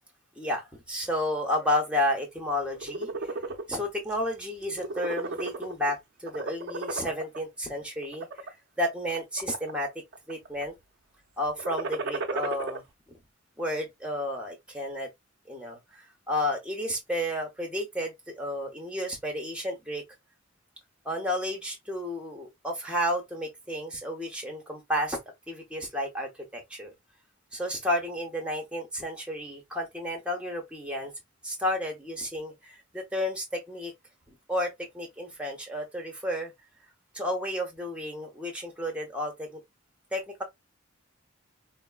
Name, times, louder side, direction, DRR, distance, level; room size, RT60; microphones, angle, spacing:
voice 1, 0.4-3.3 3.7-8.3 8.8-9.9 10.3-10.7 11.4-12.8 13.6-15.1 15.5-20.0 21.0-25.2 25.5-26.9 27.5-31.1 31.4-33.9 34.5-36.5 37.1-39.6 40.1-40.4, left 1 dB, 5° right, 0.7 m, -32 dB
sound 1, 2.6-3.6 4.1-4.3 4.6-5.9 6.3-7.4 8.0-8.5 9.1-9.8 10.1-10.6 11.5-12.8, right 3 dB, 50° right, 0.4 m, -34 dB
3.5 x 2.0 x 2.2 m
head